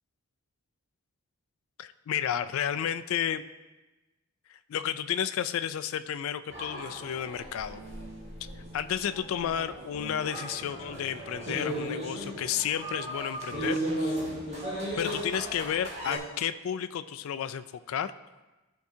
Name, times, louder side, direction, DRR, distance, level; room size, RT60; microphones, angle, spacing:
voice 1, 1.8-3.4 4.5-7.8 8.7-14.2 15.0-18.1, left 9 dB, 75° left, 11 dB, 0.3 m, -32 dB
sound 1, 6.5-16.2, right 1 dB, 30° right, 1.7 m, -36 dB
13.0 x 4.6 x 2.7 m, 1.1 s
head